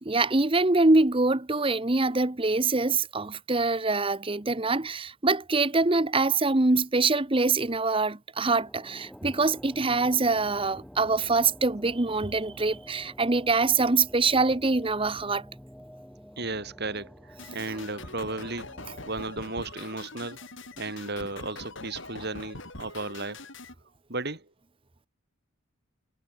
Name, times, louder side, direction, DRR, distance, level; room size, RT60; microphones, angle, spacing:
voice 1, 0.0-15.4 17.7-17.8 18.9-19.0, right 3 dB, 25° right, 0.9 m, -24 dB
sound 1, 8.4-21.0, equal, ahead, 5.3 m, -49 dB
voice 2, 16.4-18.7 19.1-20.4 20.8-23.5 24.1-24.5, right 2 dB, 45° right, 3.8 m, -34 dB
sound 2, 17.4-23.7, left 2 dB, 55° left, 6.8 m, -43 dB
head